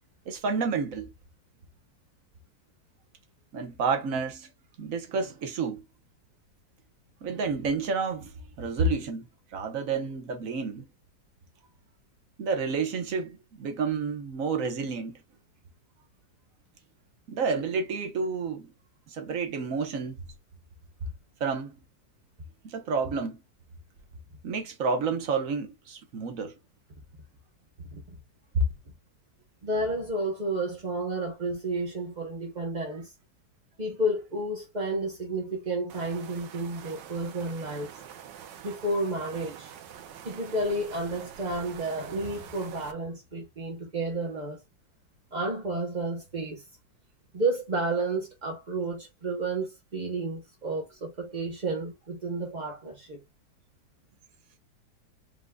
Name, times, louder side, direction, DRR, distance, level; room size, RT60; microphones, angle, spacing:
voice 1, 0.3-1.1 3.5-4.5 4.8-5.8 7.2-9.3 9.5-10.9 12.4-15.2 17.3-18.7 19.1-20.2 21.4-21.8 22.6-23.4 24.4-26.5 28.5-28.6, right 4 dB, 55° right, 1.2 m, -30 dB
voice 2, 29.6-33.1 33.8-38.0 38.6-39.7 40.2-44.6 45.3-46.7 47.3-53.2, right 2 dB, 40° right, 0.7 m, -31 dB
sound 1, 35.9-42.9, right 9 dB, 75° right, 1.4 m, -46 dB
5.1 x 3.6 x 2.2 m
omnidirectional pair, 2.0 m